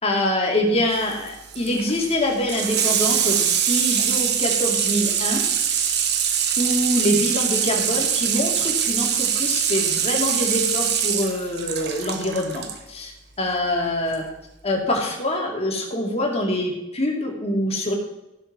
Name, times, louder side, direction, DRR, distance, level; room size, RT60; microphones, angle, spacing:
voice 1, 0.0-5.9 6.6-13.1 13.4-14.2 14.6-17.9, left 1 dB, 30° left, 0 dB, 2.8 m, -25 dB
Water tap faucet / Sink (filling or washing), 0.9-12.8 14.1-14.2, right 8 dB, 55° right, 1.4 m, -23 dB
15.0 x 7.0 x 6.2 m, 0.96 s
head